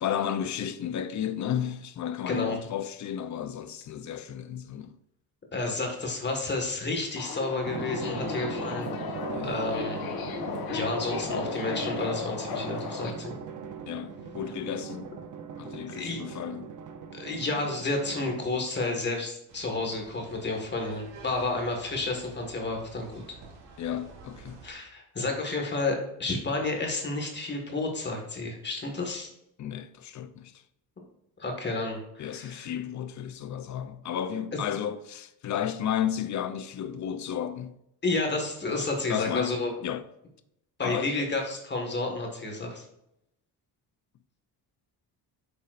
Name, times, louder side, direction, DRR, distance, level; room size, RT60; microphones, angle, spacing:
voice 1, 0.0-4.9 5.6-5.8 8.1-8.5 9.3-9.6 13.9-15.2 15.6-16.7 23.8-24.6 29.6-30.6 32.2-37.8 39.1-40.0 40.8-41.3, left 9 dB, 45° left, 0.6 m, -33 dB
voice 2, 2.3-2.6 5.5-8.9 9.4-10.0 10.7-13.4 16.0-16.2 17.1-23.1 24.6-29.3 31.4-32.7 34.5-34.6 38.0-39.7 40.8-42.8, left 2 dB, 25° left, 1.7 m, -31 dB
Subway metro underground, 7.2-13.1, left 6 dB, 65° left, 1.1 m, -35 dB
Drum, 7.7-18.7, right 6 dB, 50° right, 0.8 m, -39 dB
sound 1, 19.5-24.7, right 4 dB, 85° right, 2.5 m, -49 dB
9.5 x 7.0 x 2.5 m
cardioid pair, 170°, 40 cm